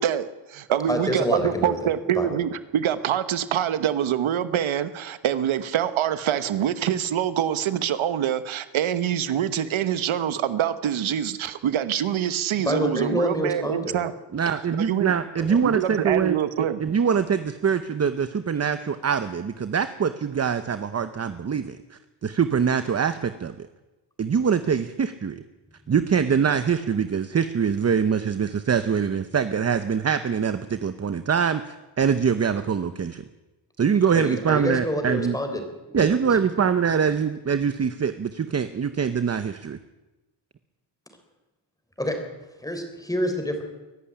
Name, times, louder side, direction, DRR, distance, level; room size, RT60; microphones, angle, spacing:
voice 1, 0.0-14.1 14.8-15.1 15.6-16.8, right 10 dB, 90° right, 12 dB, 1.1 m, -25 dB
voice 2, 0.9-1.8 2.1-2.4 12.6-14.0 15.4-15.6 34.1-36.4 42.0-42.2 42.6-43.6, equal, 5° left, 5 dB, 3.8 m, -27 dB
voice 3, 14.3-16.4 16.8-23.5 24.2-25.4 25.9-33.2 33.8-35.4 35.9-39.8, right 7 dB, 35° right, 11 dB, 0.8 m, -24 dB
23.0 x 11.5 x 10.0 m, 1.1 s
wide cardioid pair, 145°, 47 cm